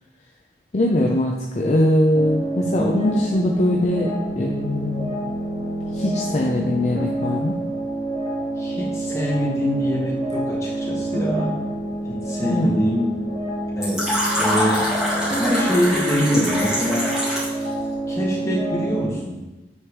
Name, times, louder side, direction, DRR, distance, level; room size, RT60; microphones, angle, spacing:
voice 1, 0.7-5.1 5.9-7.6 12.5-12.8, left 1 dB, 35° left, 0 dB, 0.5 m, -21 dB
sound 1, 2.1-19.1, right 1 dB, 40° right, 1.4 m, -27 dB
voice 2, 8.6-11.5 12.1-13.1 13.7-14.1 14.4-14.9 15.4-17.1 18.1-19.4, equal, 15° left, -8 dB, 2.1 m, -24 dB
Fill (with liquid), 13.8-17.6, equal, 5° right, 2.0 m, -24 dB
9.5 x 4.6 x 3.3 m, 1.1 s
head